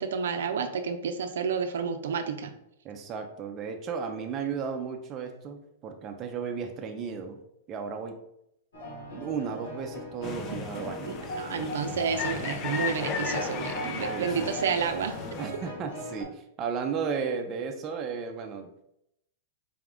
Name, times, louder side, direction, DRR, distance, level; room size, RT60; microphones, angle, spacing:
voice 1, 0.0-2.5 11.1-15.1, right 6 dB, 80° right, 7 dB, 0.4 m, -30 dB
voice 2, 2.8-7.4 7.7-8.2 9.1-11.2 14.1-14.6 15.4-18.8, right 6 dB, 25° right, 4 dB, 0.5 m, -34 dB
sound 1, 8.7-16.2, equal, 85° left, 1.4 m, -39 dB
sound 2, 10.2-15.5, left 6 dB, 30° left, 0.4 m, -35 dB
4.1 x 2.4 x 3.5 m, 0.79 s
hypercardioid pair, 145°, 0 cm